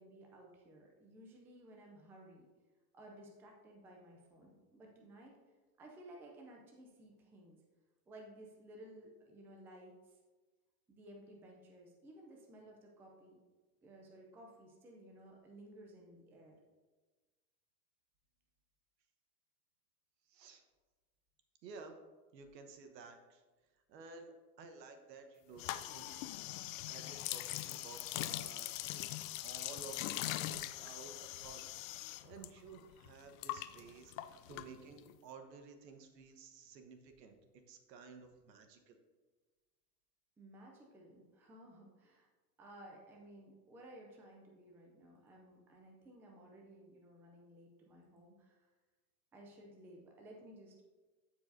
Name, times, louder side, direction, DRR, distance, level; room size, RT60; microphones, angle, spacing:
voice 1, 0.0-2.5 2.9-5.4 5.8-7.6 8.1-10.2 10.9-13.4 13.8-16.6 40.4-42.3 42.6-48.7 49.3-50.8, right 1 dB, 5° right, 0 dB, 0.3 m, -56 dB
voice 2, 20.3-20.6 21.6-21.9 22.3-23.4 23.9-26.3 26.9-29.1 29.4-31.6 32.2-37.4 37.7-39.0, right 4 dB, 80° right, 6 dB, 1.3 m, -54 dB
sound 1, 25.6-32.5 32.7-35.1, left 15 dB, 55° left, 0.5 m, -42 dB
14.0 x 4.8 x 2.7 m, 1.3 s
supercardioid pair, 130°, 49 cm